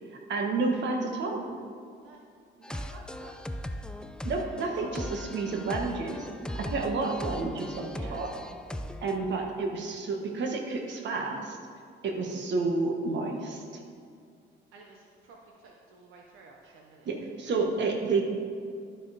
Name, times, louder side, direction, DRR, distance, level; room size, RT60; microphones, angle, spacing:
voice 1, 0.3-1.4 4.2-6.3 6.5-8.3 9.0-11.6 12.0-13.6 17.0-18.2, right 3 dB, 65° right, 2 dB, 1.3 m, -30 dB
sound 1, 2.6-9.3, left 1 dB, 5° left, 0.4 m, -38 dB
voice 2, 2.6-3.4 7.9-8.2 14.7-17.1, right 3 dB, 85° right, 0 dB, 0.8 m, -52 dB
12.0 x 4.4 x 4.9 m, 2.3 s
cardioid pair, 90°, 20 cm